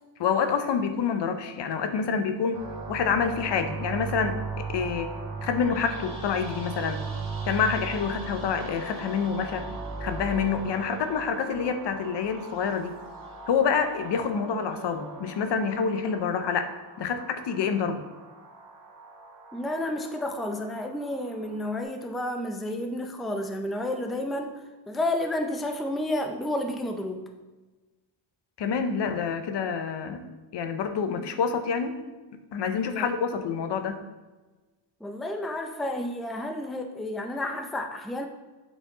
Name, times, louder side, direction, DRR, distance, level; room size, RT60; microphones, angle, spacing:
voice 1, 0.2-7.0 7.5-9.7 10.0-13.0 13.5-18.0 28.6-30.2 30.5-32.0 32.5-34.0, left 6 dB, 60° left, 8 dB, 0.8 m, -27 dB
sound 1, 2.5-21.8, right 4 dB, 45° right, 1.8 m, -38 dB
voice 2, 19.5-27.3 32.7-33.1 35.0-38.3, left 1 dB, ahead, 4 dB, 0.5 m, -31 dB
8.0 x 4.2 x 3.8 m, 1.2 s
cardioid pair, 100°, 47 cm